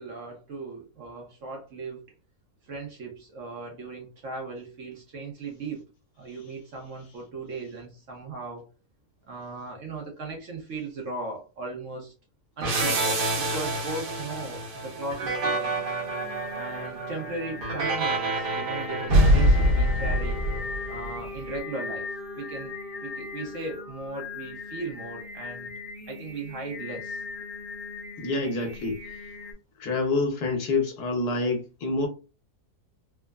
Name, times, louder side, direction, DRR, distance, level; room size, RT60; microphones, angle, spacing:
voice 1, 0.0-2.1 2.6-5.8 6.2-8.7 9.3-12.1 12.6-15.7 16.5-20.4 20.9-22.1 22.3-22.7 23.0-25.7 26.1-27.2, right 3 dB, 60° right, 0.9 m, -37 dB
sound 1, 12.6-21.1, right 1 dB, 85° right, 1.4 m, -25 dB
Singing, 15.5-29.5, left 4 dB, 55° left, 1.4 m, -40 dB
Wind instrument woodwind instrument, 20.1-24.1, left 1 dB, 30° left, 1.3 m, -41 dB
voice 2, 28.2-29.0 29.8-32.1, left 3 dB, 75° left, 1.2 m, -27 dB
3.4 x 2.0 x 2.2 m
omnidirectional pair, 1.7 m